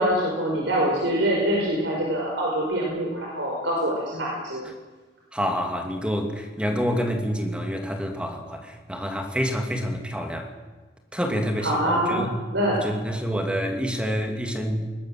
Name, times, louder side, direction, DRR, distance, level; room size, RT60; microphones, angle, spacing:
voice 1, 0.0-4.7 11.6-12.3 12.5-12.8, right 1 dB, 75° right, -2 dB, 5.2 m, -24 dB
voice 2, 5.3-10.5 11.1-12.3 12.7-14.9, equal, 5° right, 4 dB, 2.7 m, -27 dB
21.0 x 19.5 x 7.8 m, 1.3 s
head